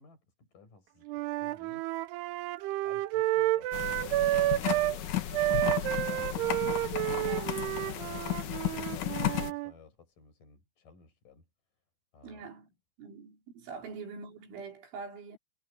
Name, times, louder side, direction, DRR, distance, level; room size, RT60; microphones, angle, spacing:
voice 1, 0.0-1.9 2.8-7.2 7.8-11.5 12.1-12.4 13.7-13.9, left 5 dB, 45° left, 8.0 m, -56 dB
Wind instrument woodwind instrument, 1.1-5.0 5.3-9.7, right 16 dB, 85° right, 2.3 m, -30 dB
sound 1, 3.7-9.5, left 12 dB, 70° left, 1.9 m, -34 dB
voice 2, 7.2-7.7 12.2-12.7 13.0-15.4, right 5 dB, 70° right, 6.8 m, -44 dB
omnidirectional pair, 5.6 m